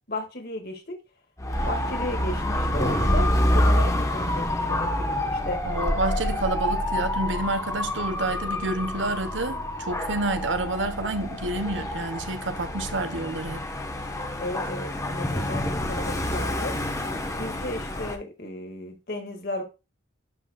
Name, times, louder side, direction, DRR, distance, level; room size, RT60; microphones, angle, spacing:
voice 1, 0.1-1.0 1.7-5.6 14.4-16.7 17.4-19.6, left 2 dB, 50° left, 2.0 m, -34 dB
Dog / Motorcycle, 1.4-18.2, left 1 dB, 15° left, 1.1 m, -27 dB
voice 2, 5.7-13.6, right 2 dB, 75° right, 1.1 m, -29 dB
11.5 x 4.6 x 2.3 m
head